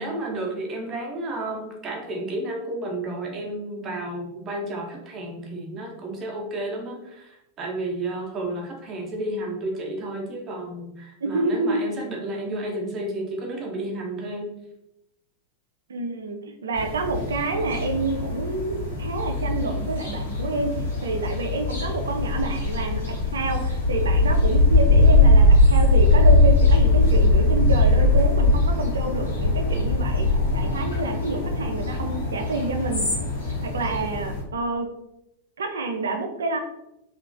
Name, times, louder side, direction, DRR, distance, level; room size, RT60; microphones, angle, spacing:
voice 1, 0.0-14.5, right 1 dB, 30° right, 0 dB, 0.7 m, -32 dB
voice 2, 11.2-11.8 15.9-20.8 21.0-33.1 33.6-34.9 35.6-36.6, right 3 dB, 65° right, 5 dB, 0.4 m, -28 dB
sound 1, 16.7-34.4, left 2 dB, 80° left, 0.9 m, -20 dB
2.9 x 2.4 x 2.5 m, 0.85 s
figure-of-eight pair, 90°, 0 cm